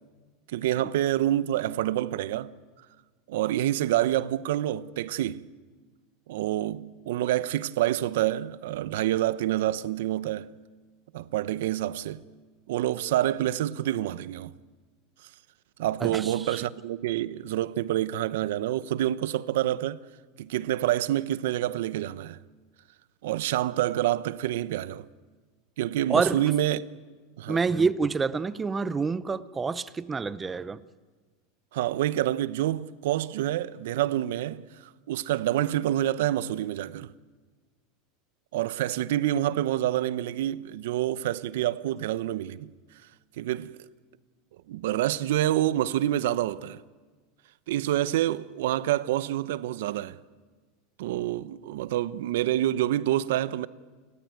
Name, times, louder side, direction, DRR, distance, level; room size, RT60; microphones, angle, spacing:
voice 1, 0.5-2.5 3.3-5.5 6.3-10.5 11.1-12.3 12.7-14.6 15.8-20.0 20.4-22.4 23.2-25.1 25.8-26.8 27.4-27.6 31.7-37.1 38.5-42.7 43.4-43.7 44.7-46.8 47.7-50.2 51.0-53.7, right 13 dB, 75° right, 0.8 m, -27 dB
voice 2, 16.0-16.6 26.1-26.4 27.5-30.8, right 4 dB, 15° right, 0.7 m, -27 dB
29.5 x 14.0 x 9.2 m
supercardioid pair, 145°, 0 cm